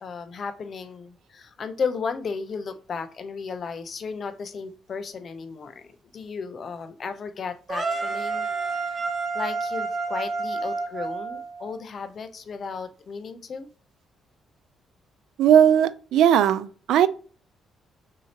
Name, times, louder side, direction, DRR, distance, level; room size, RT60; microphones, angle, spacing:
voice 1, 0.0-9.0 9.3-13.7, left 5 dB, 50° left, 0.6 m, -34 dB
sound 1, 7.7-11.8, right 4 dB, 40° right, 1.3 m, -29 dB
voice 2, 15.4-17.1, right 9 dB, 80° right, 0.3 m, -18 dB
6.2 x 2.8 x 2.9 m
cardioid pair, 90°, 0 cm